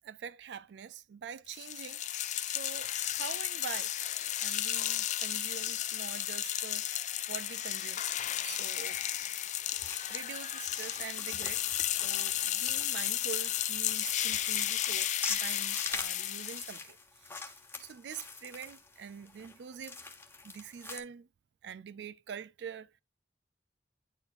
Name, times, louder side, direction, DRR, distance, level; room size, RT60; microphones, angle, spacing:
voice 1, 0.0-2.0 2.4-3.9 4.4-8.0 8.4-9.0 10.1-11.6 11.9-20.0 20.4-21.3 21.6-22.9, right 7 dB, 70° right, 0.4 m, -45 dB
sound 1, 1.5-16.8, left 12 dB, 45° left, 0.4 m, -33 dB
sound 2, 8.6-21.0, left 3 dB, 15° left, 1.1 m, -45 dB
9.6 x 4.5 x 2.5 m
head